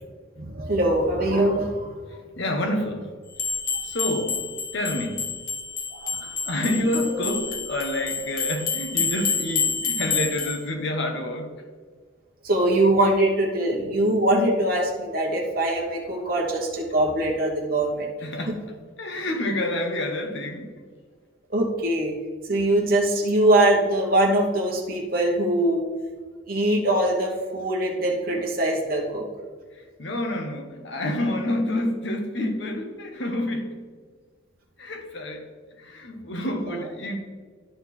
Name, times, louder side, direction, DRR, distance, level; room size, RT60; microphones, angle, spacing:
voice 1, 0.4-1.9 5.9-6.2 12.4-18.1 21.5-22.2 22.5-25.9 26.5-29.2 36.7-36.8, right 1 dB, 45° right, -1 dB, 1.0 m, -22 dB
voice 2, 2.1-3.1 3.8-4.4 4.7-5.2 6.2-11.5 18.2-18.6 19.0-20.8 29.7-33.8 34.8-35.5 35.7-37.2, left 1 dB, 65° left, 4 dB, 1.0 m, -28 dB
sound 1, 3.3-10.6, left 5 dB, 45° left, 1.3 m, -28 dB
11.5 x 4.3 x 4.2 m, 1.5 s
head